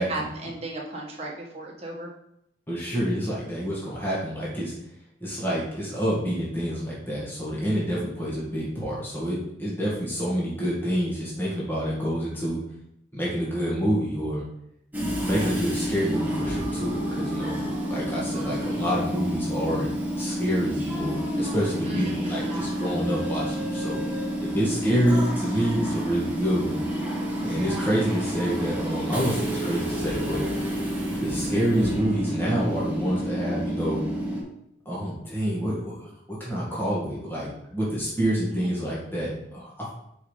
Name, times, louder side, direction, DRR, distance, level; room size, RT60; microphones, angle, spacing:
voice 1, 0.1-2.1 15.4-15.5 21.8-22.6 38.5-38.7, right 1 dB, 35° right, -3 dB, 1.4 m, -35 dB
voice 2, 2.7-4.7 5.2-12.6 13.1-14.4 15.2-17.6 17.9-24.0 24.4-26.8 27.4-30.4 31.2-34.0 34.9-39.9, equal, 10° left, -7 dB, 1.8 m, -27 dB
Train / Subway metro underground, 14.9-34.4, equal, 10° right, 1.3 m, -29 dB
5.4 x 4.8 x 5.0 m, 0.77 s
head